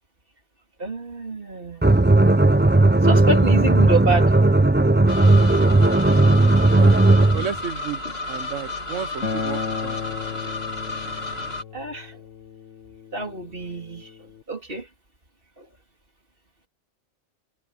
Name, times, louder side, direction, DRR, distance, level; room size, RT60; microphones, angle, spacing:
voice 1, 0.8-1.9 3.0-4.4 11.7-12.2 13.1-14.9 15.6-15.7, right 2 dB, 50° right, 3.8 m, -27 dB
sound 1, 1.8-7.5, right 2 dB, 10° right, 0.6 m, -16 dB
sound 2, 5.1-11.6, left 2 dB, 55° left, 3.0 m, -32 dB
voice 2, 7.3-8.0 8.3-10.0, right 8 dB, 80° right, 1.4 m, -32 dB
Acoustic guitar, 9.2-14.4, left 5 dB, 90° left, 1.8 m, -34 dB
omnidirectional pair, 1.2 m